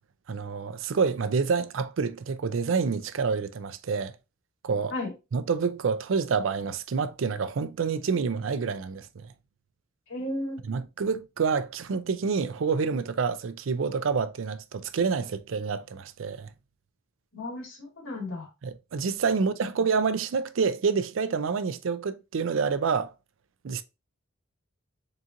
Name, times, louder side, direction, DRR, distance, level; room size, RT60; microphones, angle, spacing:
voice 1, 0.3-4.2 4.6-4.9 5.3-9.3 10.7-16.5 18.6-23.1 23.6-23.8, right 5 dB, 70° right, 0.4 m, -28 dB
voice 2, 10.1-10.6 17.3-18.5 19.3-19.4, left 1 dB, 80° left, 2.1 m, -34 dB
3.8 x 2.9 x 3.7 m
head